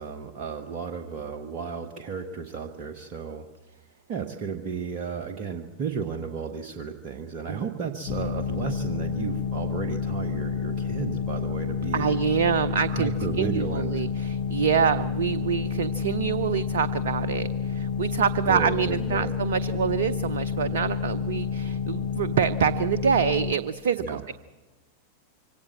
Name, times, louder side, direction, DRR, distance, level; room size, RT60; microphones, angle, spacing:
voice 1, 0.0-3.5 4.1-12.1 12.9-14.0 18.5-19.3 24.0-24.2, right 6 dB, 40° right, 5 dB, 1.3 m, -33 dB
sound 1, 8.1-23.5, left 6 dB, 45° left, 1.1 m, -29 dB
voice 2, 11.9-13.1 13.4-24.3, right 7 dB, 60° right, 14 dB, 0.6 m, -26 dB
24.0 x 17.5 x 7.7 m, 1.2 s
figure-of-eight pair, 90°, 0 cm